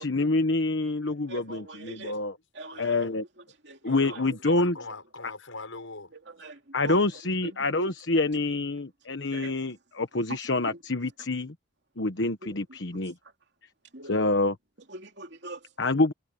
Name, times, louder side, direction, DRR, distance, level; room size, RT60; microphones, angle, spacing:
voice 1, 0.0-2.3 2.8-3.2 3.8-4.7 6.7-11.5 12.0-13.1 14.1-14.5 15.8-16.1, left 2 dB, 65° left, 1.2 m, -27 dB
voice 2, 1.3-2.2 2.5-3.1 3.6-4.7 6.1-7.9 9.2-9.6 10.3-10.4 10.7-10.8 12.4-13.0 13.9-14.2 14.9-15.7, right 2 dB, 60° right, 3.0 m, -43 dB
voice 3, 2.7-3.2 3.9-6.1 6.4-6.5, left 3 dB, 85° left, 6.7 m, -42 dB
head